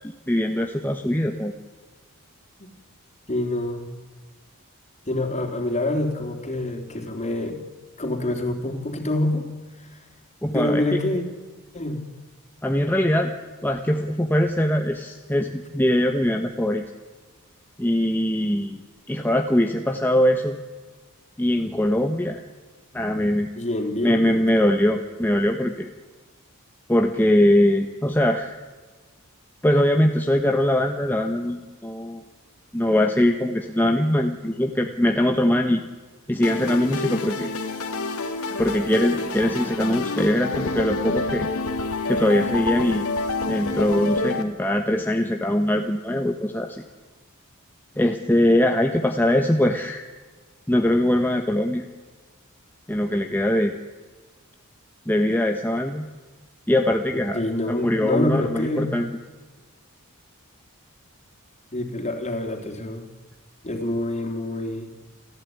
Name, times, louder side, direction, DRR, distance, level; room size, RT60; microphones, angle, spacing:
voice 1, 0.0-1.5 10.4-10.8 12.6-13.3 13.6-16.8 17.8-18.8 19.1-20.6 21.4-22.4 22.9-23.5 24.0-25.9 26.9-28.6 29.6-32.2 32.7-35.8 36.3-37.5 38.6-41.5 42.1-43.1 43.5-46.8 48.0-50.1 50.7-51.9 52.9-53.7 55.1-56.1 56.7-57.4 57.7-59.1, left 1 dB, 10° left, 3 dB, 1.2 m, -22 dB
voice 2, 3.3-3.9 5.1-7.6 8.0-9.5 10.5-11.2 11.7-12.0 23.6-24.4 57.1-58.9 61.7-63.0 63.6-64.9, left 1 dB, 30° left, 4 dB, 3.7 m, -26 dB
sound 1, 36.4-44.4, left 3 dB, 70° left, 2.6 m, -28 dB
29.0 x 14.5 x 9.5 m, 1.4 s
head